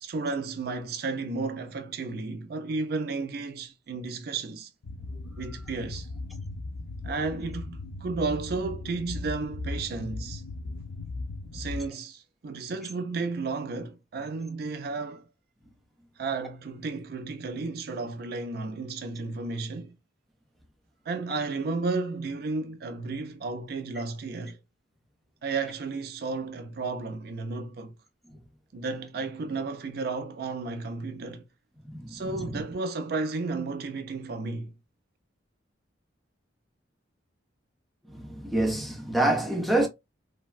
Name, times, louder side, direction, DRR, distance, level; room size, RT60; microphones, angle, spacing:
voice 1, 0.0-4.7 5.4-6.1 7.0-10.4 11.5-15.3 16.2-19.9 21.1-24.6 25.4-27.9 28.7-31.4 32.1-34.7, right 3 dB, 55° right, 0.4 m, -33 dB
sound 1, 4.8-11.9, left 2 dB, 70° left, 0.6 m, -38 dB
voice 2, 31.8-32.6 38.1-39.9, right 1 dB, ahead, 0.7 m, -27 dB
3.3 x 2.1 x 2.3 m
head